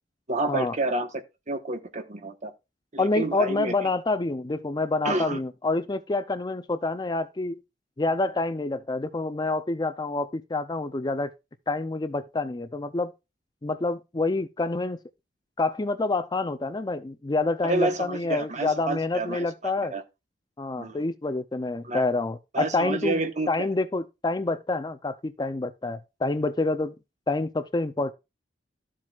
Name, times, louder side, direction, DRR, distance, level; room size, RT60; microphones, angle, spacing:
voice 1, 0.3-2.5 2.9-3.7 5.0-5.4 17.6-20.0 20.8-21.0 21.8-22.0 22.5-23.5, right 2 dB, 40° right, 1.2 m, -29 dB
voice 2, 3.0-7.6 8.0-11.3 11.7-13.1 13.6-15.0 15.6-19.9 20.6-23.2 23.5-26.9 27.3-28.1, left 2 dB, 25° left, 0.5 m, -27 dB
12.5 x 7.5 x 2.4 m
head